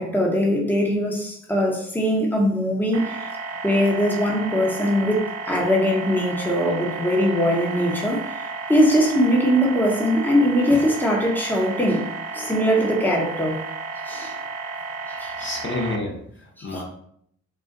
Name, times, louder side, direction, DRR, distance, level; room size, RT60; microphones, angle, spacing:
voice 1, 0.0-3.2 3.6-12.1 12.3-13.6 14.1-14.3 15.1-15.5 16.6-16.7, equal, 5° left, -1 dB, 0.9 m, -21 dB
sound 1, 2.9-16.0, right 4 dB, 50° right, 0.5 m, -33 dB
voice 2, 15.3-16.8, left 2 dB, 40° left, 0 dB, 0.8 m, -30 dB
3.9 x 2.4 x 3.7 m, 0.67 s
cardioid pair, 90°, 30 cm